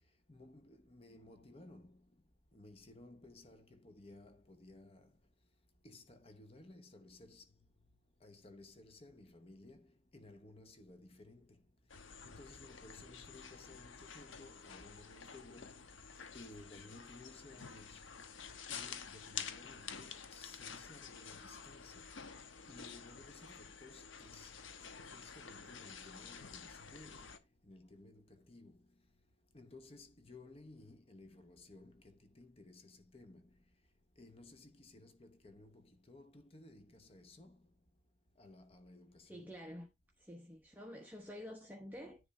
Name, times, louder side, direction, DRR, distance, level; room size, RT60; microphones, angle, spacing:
voice 1, 0.3-2.1 2.5-5.1 5.8-7.5 8.2-9.9 10.1-11.5 12.2-15.8 16.3-18.0 18.7-22.1 22.7-24.5 24.8-27.3 27.6-28.8 29.5-33.5 34.2-37.6 38.4-39.6, left 2 dB, 30° left, 0.9 m, -57 dB
sound 1, 11.9-27.4, left 6 dB, 85° left, 1.2 m, -50 dB
voice 2, 39.3-39.9 40.2-42.2, equal, 10° right, 1.0 m, -49 dB
10.5 x 3.4 x 5.5 m
head